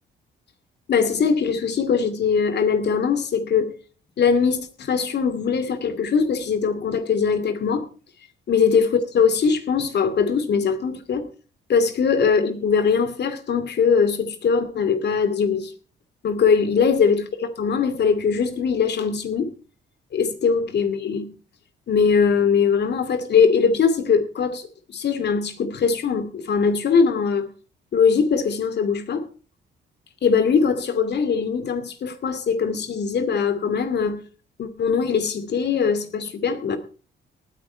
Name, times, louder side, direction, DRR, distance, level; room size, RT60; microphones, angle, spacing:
voice 1, 0.9-3.7 4.2-7.9 8.5-11.3 11.7-15.7 16.2-17.2 17.6-19.5 20.1-21.3 21.9-27.5 27.9-29.2 30.2-34.2 34.6-36.8, left 6 dB, 60° left, 2.5 m, -21 dB
18.5 x 9.7 x 4.6 m
cardioid pair, 90°, 20 cm